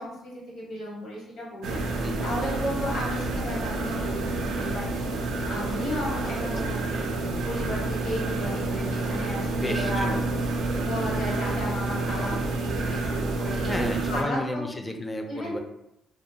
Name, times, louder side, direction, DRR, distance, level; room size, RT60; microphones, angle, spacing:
voice 1, 0.0-4.9 5.3-7.0 7.4-10.1 10.8-14.6 15.3-15.6, left 1 dB, 75° left, -4 dB, 1.2 m, -34 dB
sound 1, 1.6-14.2, right 2 dB, 85° right, 0.4 m, -29 dB
voice 2, 6.2-6.7 9.6-10.4 13.6-15.6, left 1 dB, 20° left, 4 dB, 0.4 m, -33 dB
2.3 x 2.3 x 2.7 m, 0.82 s
cardioid pair, 90°, 0 cm